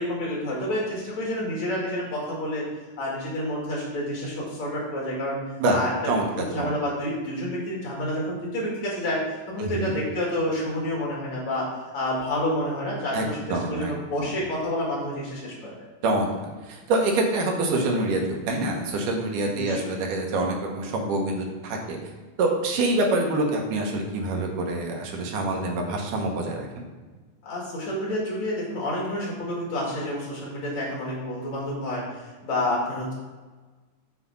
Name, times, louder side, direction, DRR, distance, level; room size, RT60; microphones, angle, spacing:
voice 1, 0.0-2.6 3.0-5.4 5.7-5.9 6.3-9.2 9.5-11.6 11.9-15.7 19.4-19.9 27.4-33.1, left 1 dB, 60° left, -4 dB, 3.2 m, -29 dB
voice 2, 9.6-10.0 13.1-14.3 16.0-16.3 16.7-22.0 22.4-26.9, right 2 dB, 85° right, 1 dB, 2.7 m, -26 dB
8.1 x 4.1 x 5.4 m, 1.3 s
omnidirectional pair, 3.6 m